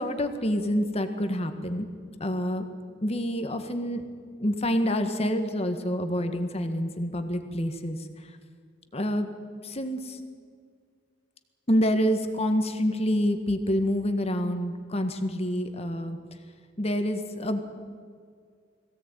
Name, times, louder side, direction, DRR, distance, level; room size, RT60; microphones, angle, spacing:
voice 1, 0.0-1.9 2.2-2.7 3.0-4.0 4.4-8.0 8.9-9.3 9.6-10.2 11.7-16.2 16.8-17.6, equal, 35° left, 7 dB, 1.7 m, -27 dB
21.5 x 17.0 x 9.1 m, 2.1 s
head